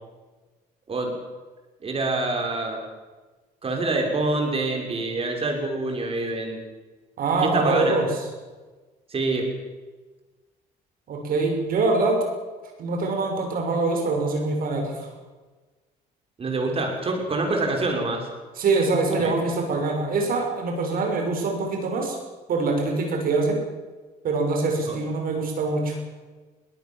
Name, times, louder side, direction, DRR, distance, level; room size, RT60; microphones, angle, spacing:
voice 1, 1.8-2.8 3.6-6.6 7.4-8.0 9.1-9.5 16.4-18.3 19.2-19.3 24.9-25.0, right 2 dB, 35° right, 2 dB, 6.5 m, -26 dB
voice 2, 7.2-8.1 11.1-12.2 12.8-15.1 18.6-22.2 22.5-23.6 24.2-26.0, right 3 dB, 60° right, 2 dB, 6.4 m, -24 dB
22.5 x 18.5 x 7.4 m, 1.3 s
cardioid pair, 110°, 17 cm